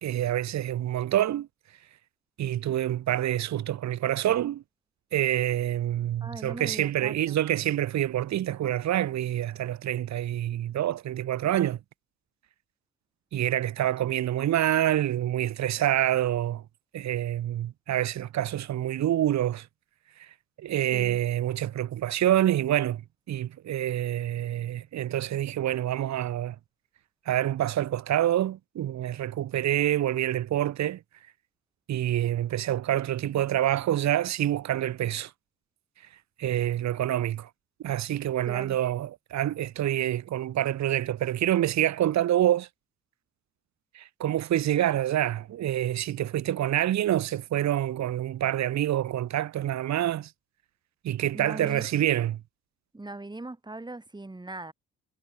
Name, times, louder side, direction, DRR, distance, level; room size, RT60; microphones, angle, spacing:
voice 1, 0.0-1.5 2.4-4.6 5.1-11.8 13.3-16.6 16.9-19.7 20.6-23.0 23.3-26.5 27.3-31.0 31.9-35.3 36.4-37.5 37.8-42.7 43.9-50.3 51.0-52.4, right 12 dB, 65° right, 1.2 m, -27 dB
voice 2, 6.2-7.4 20.9-21.2 38.5-38.8 51.3-51.9 52.9-54.7, right 2 dB, 15° right, 4.4 m, -40 dB
cardioid pair, 90°, 30 cm